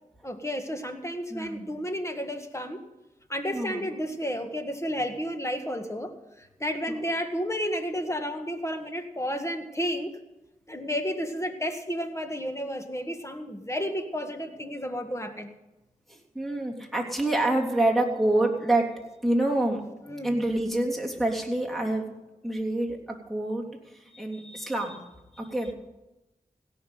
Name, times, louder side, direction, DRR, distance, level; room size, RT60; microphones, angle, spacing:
voice 1, 0.2-2.8 3.3-10.2 10.7-15.5 20.1-20.4, equal, 20° left, 6 dB, 1.8 m, -32 dB
voice 2, 1.3-1.7 3.5-3.8 16.1-18.9 19.2-19.8 20.2-22.1 22.4-23.0 23.3-23.6 24.1-25.0 25.3-25.7, right 1 dB, ahead, 0 dB, 3.2 m, -26 dB
17.0 x 6.0 x 9.3 m, 0.99 s
cardioid pair, 50°, 14 cm